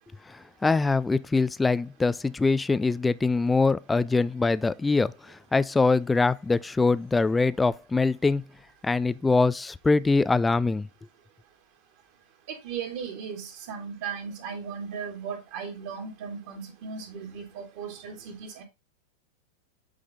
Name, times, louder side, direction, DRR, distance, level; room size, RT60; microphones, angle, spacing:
voice 1, 0.6-5.1 5.5-8.4 8.8-10.9, left 3 dB, 10° left, 0.4 m, -23 dB
voice 2, 12.5-18.6, right 6 dB, 45° right, 2.8 m, -37 dB
8.5 x 5.0 x 3.8 m
figure-of-eight pair, 90°, 0 cm